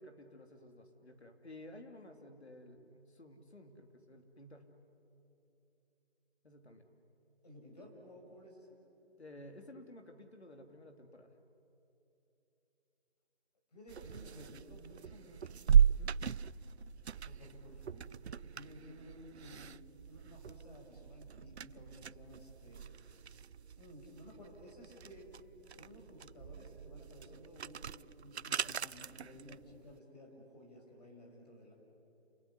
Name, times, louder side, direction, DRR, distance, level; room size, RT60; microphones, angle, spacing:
voice 1, 0.0-4.8 6.4-6.9 9.2-11.3 15.9-16.2, left 1 dB, 75° left, 5 dB, 3.6 m, -54 dB
voice 2, 7.4-8.7 13.7-15.6 17.2-22.9 23.7-25.4 25.7-31.7, left 1 dB, 40° left, 0 dB, 6.3 m, -55 dB
sound 1, 13.9-30.0, right 8 dB, 80° right, 0.5 m, -36 dB
29.0 x 19.5 x 9.9 m, 2.9 s
figure-of-eight pair, 175°, 33 cm